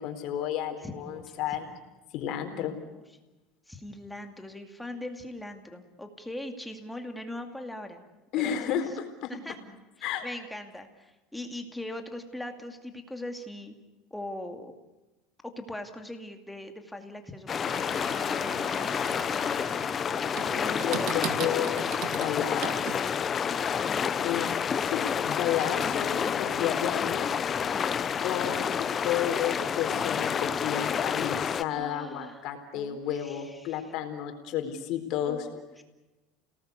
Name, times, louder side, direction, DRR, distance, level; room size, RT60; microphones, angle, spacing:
voice 1, 0.0-1.7 2.1-2.8 8.3-9.3 10.0-10.3 20.5-23.0 24.2-24.5 24.8-27.3 28.2-35.5, left 10 dB, 50° left, 6 dB, 4.2 m, -32 dB
voice 2, 0.8-1.2 1.6-1.8 2.3-3.0 3.7-8.0 8.4-8.8 9.3-9.6 10.0-13.8 14.1-14.7 15.4-19.2 20.6-21.3 23.7-24.5 27.7-28.0 31.7-32.5 32.7-33.9 35.3-35.8, left 1 dB, 5° left, 5 dB, 2.4 m, -41 dB
sound 1, 17.5-31.6, left 7 dB, 25° left, 0.8 m, -29 dB
sound 2, 17.6-23.4, right 10 dB, 55° right, 2.0 m, -39 dB
29.5 x 19.0 x 8.3 m, 1.1 s
cardioid pair, 145°, 0 cm